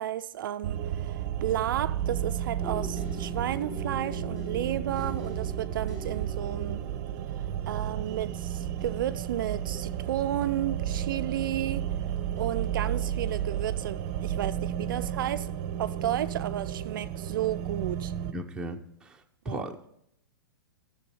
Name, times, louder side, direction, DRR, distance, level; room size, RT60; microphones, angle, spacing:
voice 1, 0.0-6.8 7.7-11.9 12.4-15.5 15.8-18.1 19.5-19.7, right 12 dB, 65° right, 0.4 m, -32 dB
sound 1, 0.6-18.3, right 10 dB, 40° right, 0.7 m, -32 dB
sound 2, 2.6-14.5 15.1-15.6 16.0-16.3, left 2 dB, 30° left, 2.9 m, -46 dB
voice 2, 18.3-19.2 19.4-19.9, right 1 dB, 5° right, 0.7 m, -37 dB
12.0 x 7.0 x 5.4 m
hypercardioid pair, 140°, 12 cm